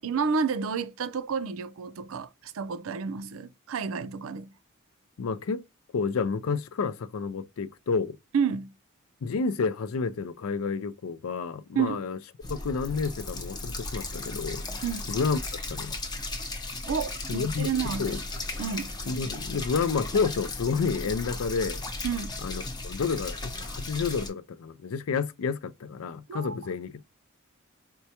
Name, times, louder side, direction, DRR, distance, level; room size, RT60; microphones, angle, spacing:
voice 1, 0.0-4.5 8.3-8.7 11.7-12.0 14.8-15.1 16.9-18.2 18.6-18.9 22.0-22.3 26.3-26.6, right 6 dB, 65° right, 0.4 m, -30 dB
voice 2, 5.2-5.6 5.9-8.2 9.2-12.2 12.5-15.4 15.7-16.0 17.3-17.7 18.0-18.2 19.1-21.8 22.4-27.0, left 5 dB, 70° left, 0.4 m, -30 dB
sound 1, 12.4-24.3, left 2 dB, 20° left, 0.6 m, -36 dB
4.4 x 2.1 x 2.8 m
head